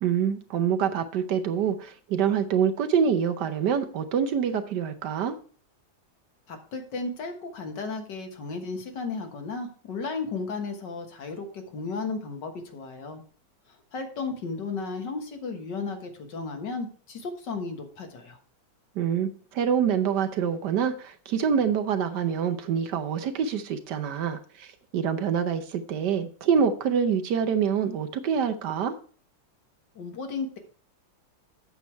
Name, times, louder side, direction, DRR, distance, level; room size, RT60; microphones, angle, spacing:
voice 1, 0.0-5.3 19.0-28.9, right 7 dB, 70° right, 8 dB, 1.3 m, -26 dB
voice 2, 6.5-13.2 13.9-18.4 30.0-30.6, left 4 dB, 65° left, 5 dB, 2.0 m, -34 dB
8.3 x 7.0 x 4.4 m, 0.42 s
omnidirectional pair, 2.1 m